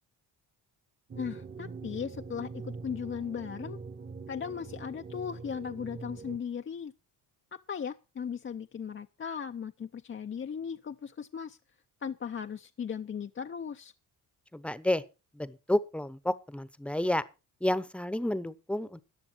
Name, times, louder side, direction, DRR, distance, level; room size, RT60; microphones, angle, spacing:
voice 1, 1.1-3.8 4.3-6.9 7.5-11.6 12.0-13.9, left 7 dB, 30° left, 0.5 m, -37 dB
sound 1, 1.1-6.4, right 4 dB, 25° right, 1.0 m, -43 dB
voice 2, 14.5-15.0 15.3-17.2 17.6-19.0, left 1 dB, 5° left, 0.8 m, -30 dB
14.0 x 9.8 x 4.4 m
cardioid pair, 95°, 42 cm